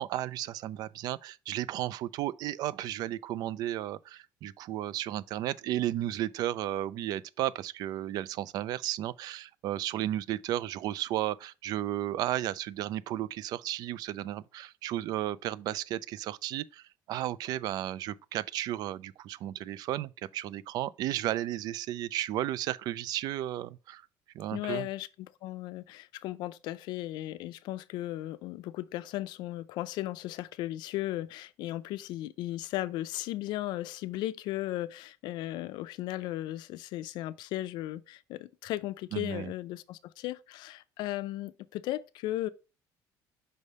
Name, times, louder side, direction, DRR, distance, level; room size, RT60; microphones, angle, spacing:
voice 1, 0.0-24.0 24.3-24.9 39.1-39.5, right 13 dB, 60° right, 0.3 m, -34 dB
voice 2, 24.5-42.5, left 15 dB, 70° left, 0.4 m, -36 dB
5.4 x 3.3 x 5.3 m
cardioid pair, 160°, 8 cm